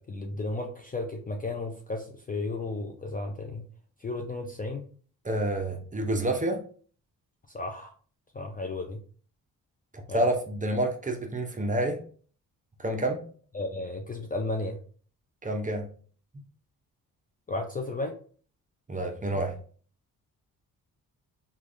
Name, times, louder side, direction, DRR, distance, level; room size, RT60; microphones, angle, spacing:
voice 1, 0.1-3.6 4.0-4.8 7.5-7.9 8.3-9.0 10.1-10.2 13.5-14.8 17.5-18.1, left 2 dB, 25° left, 3 dB, 0.4 m, -33 dB
voice 2, 5.2-6.6 10.1-12.0 12.8-13.2 15.4-15.9 18.9-19.6, right 1 dB, 20° right, 3 dB, 0.6 m, -28 dB
3.2 x 2.4 x 2.5 m, 0.43 s
cardioid pair, 75°, 37 cm